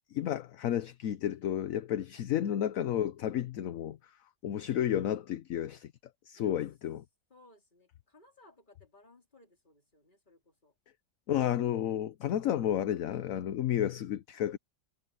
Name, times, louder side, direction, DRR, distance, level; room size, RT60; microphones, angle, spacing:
voice 1, 0.1-5.9 6.2-7.0 11.3-14.6, left 11 dB, 60° left, 1.0 m, -32 dB
voice 2, 7.3-10.7, left 2 dB, 25° left, 4.2 m, -61 dB
omnidirectional pair, 1.8 m